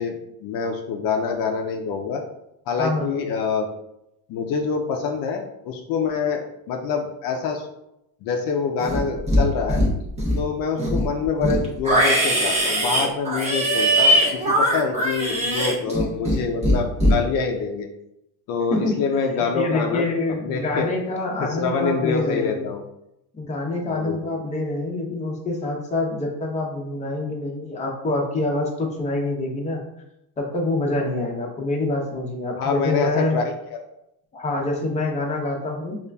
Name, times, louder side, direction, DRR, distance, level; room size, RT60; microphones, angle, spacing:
voice 1, 0.0-2.2 2.7-3.7 4.3-7.7 8.2-9.8 10.4-17.9 18.5-20.1 20.4-20.9 21.4-22.8 23.9-24.2 32.6-33.4 33.7-33.8, left 5 dB, 60° left, 3 dB, 0.5 m, -26 dB
voice 2, 2.8-3.2 18.7-19.0 19.5-22.7 23.3-29.8 30.4-33.4 34.3-36.0, left 2 dB, 15° left, -1 dB, 0.7 m, -26 dB
Livestock farm animals working animals, 8.8-9.4 9.7-10.4 10.8-16.4 16.6-17.1, equal, 15° right, 0.7 m, -20 dB
5.1 x 2.5 x 2.2 m, 0.85 s
cardioid pair, 140°, 40 cm